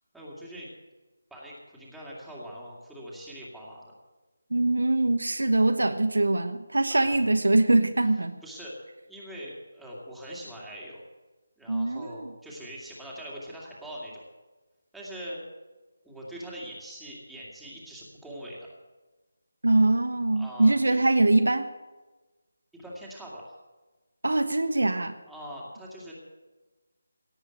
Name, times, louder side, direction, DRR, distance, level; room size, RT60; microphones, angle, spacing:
voice 1, 0.1-0.7 1.3-3.8 6.9-7.2 8.4-8.7 9.1-11.0 11.6-14.3 14.9-15.4 16.0-18.6 20.3-21.0 22.7-23.6 25.3-26.1, equal, ahead, -7 dB, 2.5 m, -42 dB
voice 2, 4.5-8.3 11.7-12.3 19.6-21.6 24.2-25.2, right 2 dB, 65° right, 8 dB, 1.2 m, -23 dB
17.5 x 8.1 x 9.1 m, 1.2 s
figure-of-eight pair, 155°, 0 cm